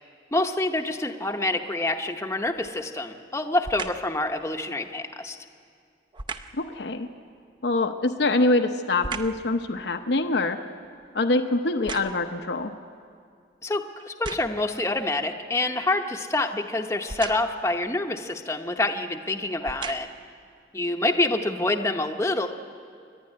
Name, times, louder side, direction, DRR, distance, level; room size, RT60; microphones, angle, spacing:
voice 1, 0.3-5.4 13.6-20.1 20.7-22.5, left 2 dB, 15° left, 4 dB, 0.8 m, -27 dB
sound 1, 2.5-2.9 3.6-4.1 6.1-6.6 8.1-9.5 10.0-12.5 13.1-13.2 14.0-14.7 17.0-17.6 18.7-18.8 19.5-20.3 20.9-21.0, right 4 dB, 25° right, 0.7 m, -38 dB
voice 2, 6.5-7.1 7.6-10.6 11.1-12.7, left 2 dB, 75° left, 6 dB, 0.8 m, -24 dB
29.0 x 12.0 x 9.7 m, 2.3 s
head